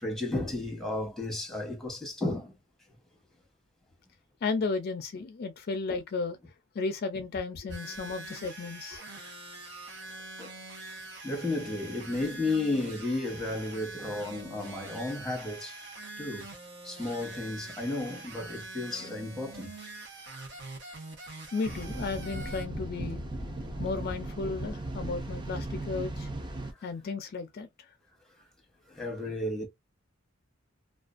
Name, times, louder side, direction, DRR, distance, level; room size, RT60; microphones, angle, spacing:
voice 1, 0.0-2.5 10.4-10.5 11.2-15.8 16.2-16.5 16.8-19.8 28.9-29.7, left 2 dB, ahead, 0.9 m, -33 dB
voice 2, 4.4-6.4 6.7-9.0 21.5-23.2 23.7-26.3 26.8-27.7, left 4 dB, 50° left, 0.4 m, -34 dB
sound 1, 7.7-22.6, right 2 dB, 60° right, 0.9 m, -44 dB
sound 2, 21.6-26.7, right 1 dB, 20° right, 0.5 m, -37 dB
2.5 x 2.2 x 2.4 m
head